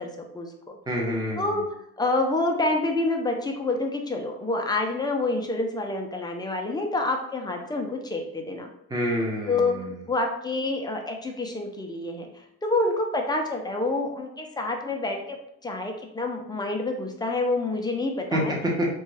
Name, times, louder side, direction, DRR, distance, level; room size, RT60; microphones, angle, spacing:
voice 1, 0.0-0.7 1.4-1.6 2.0-8.7 9.5-9.7 10.1-12.3 12.6-15.4 15.6-18.6, left 2 dB, 10° left, 2 dB, 0.3 m, -27 dB
voice 2, 0.9-1.6 8.9-9.9 18.3-18.9, equal, 10° right, -2 dB, 0.7 m, -27 dB
3.5 x 2.2 x 3.2 m, 0.77 s
cardioid pair, 130°, 37 cm